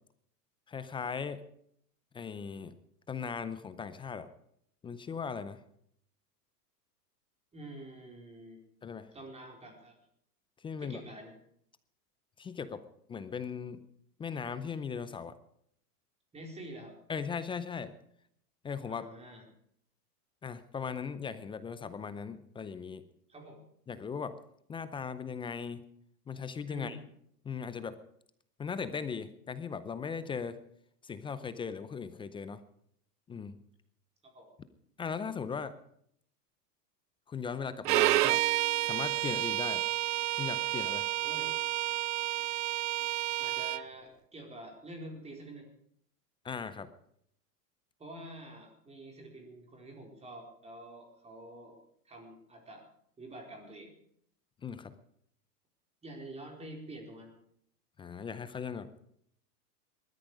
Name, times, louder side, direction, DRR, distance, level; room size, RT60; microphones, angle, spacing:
voice 1, 0.7-1.4 2.1-2.7 3.1-4.3 4.8-5.6 8.8-9.1 10.6-11.0 12.4-12.8 13.1-13.8 14.2-15.4 17.1-17.9 18.6-19.1 20.4-23.0 23.9-24.4 24.7-25.8 26.3-27.0 27.4-28.0 28.6-30.6 31.0-32.6 33.3-33.6 35.0-35.8 37.3-38.4 38.8-39.8 40.3-41.1 46.4-46.9 54.6-54.9 58.0-59.0, left 6 dB, 10° left, 13 dB, 0.5 m, -38 dB
voice 2, 7.5-8.6 9.1-10.0 10.8-11.3 16.3-17.0 18.9-19.5 23.3-23.6 26.7-27.0 34.2-34.5 41.2-41.6 43.4-45.7 48.0-51.7 52.0-52.8 53.2-53.9 56.0-57.3, right 1 dB, 15° right, 2 dB, 4.5 m, -47 dB
Bowed string instrument, 37.8-43.8, right 17 dB, 75° right, 0.6 m, -30 dB
20.0 x 13.5 x 4.9 m, 0.68 s
hypercardioid pair, 130°, 48 cm